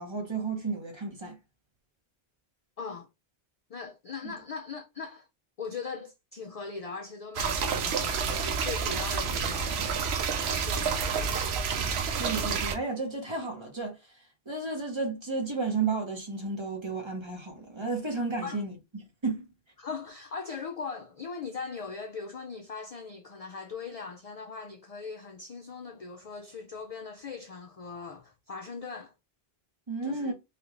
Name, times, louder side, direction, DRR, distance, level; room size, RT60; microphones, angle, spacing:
voice 1, 0.0-1.4 4.2-4.3 12.2-14.0 14.5-19.5 29.9-30.3, right 3 dB, 30° right, 0.9 m, -32 dB
voice 2, 2.8-3.1 3.7-5.3 5.6-9.8 10.4-11.5 18.4-18.6 19.8-29.1 30.0-30.3, left 5 dB, 55° left, 0.4 m, -40 dB
sound 1, 7.3-12.7, right 6 dB, 85° right, 0.9 m, -29 dB
3.4 x 2.5 x 2.9 m
omnidirectional pair, 1.0 m